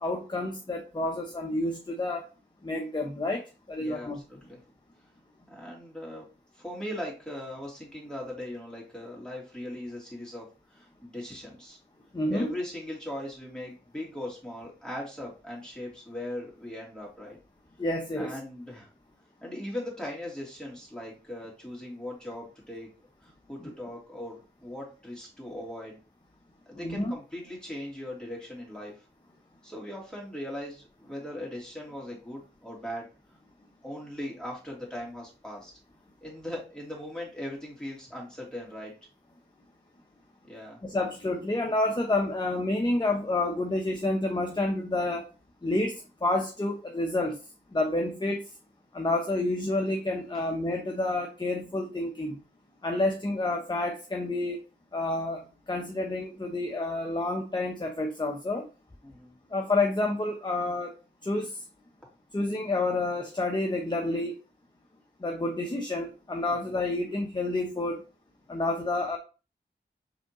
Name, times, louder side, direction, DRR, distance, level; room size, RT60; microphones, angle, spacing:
voice 1, 0.0-2.2 2.6-3.4 3.7-4.2 12.1-12.5 17.8-18.3 26.8-27.1 40.8-45.2 45.6-47.4 47.7-48.4 48.9-52.4 52.8-54.6 54.9-55.4 55.7-58.7 59.5-60.9 61.2-61.5 62.3-64.4 65.2-68.0 68.5-69.2, left 2 dB, 25° left, 2 dB, 0.8 m, -29 dB
voice 2, 3.8-4.6 5.5-6.3 6.5-10.5 10.7-11.8 12.3-17.4 18.2-18.9 19.4-22.9 23.2-26.0 26.7-28.9 29.6-33.1 33.8-35.7 36.2-38.9 40.5-40.8 50.3-50.4 59.0-59.3, left 1 dB, 5° left, -4 dB, 2.7 m, -39 dB
5.0 x 3.5 x 3.0 m, 0.33 s
wide cardioid pair, 45°, 19 cm